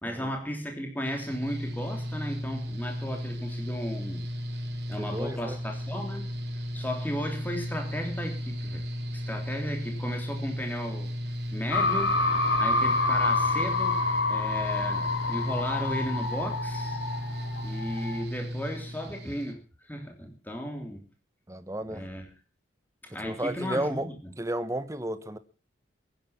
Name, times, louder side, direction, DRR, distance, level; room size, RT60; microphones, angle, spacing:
voice 1, 0.0-4.3 4.9-8.9 9.1-11.2 11.5-12.2 12.6-17.0 17.6-21.1 21.9-22.3 23.1-24.3, equal, 10° left, 3.2 m, -35 dB
Mechanical fan, 1.1-19.5, equal, 60° right, 3.3 m, -35 dB
voice 2, 5.0-5.6 21.5-22.1 23.1-24.1 24.4-25.4, right 1 dB, 15° right, 1.0 m, -33 dB
sound 1, 11.7-18.2, left 3 dB, 75° left, 3.2 m, -28 dB
22.0 x 10.0 x 5.8 m
head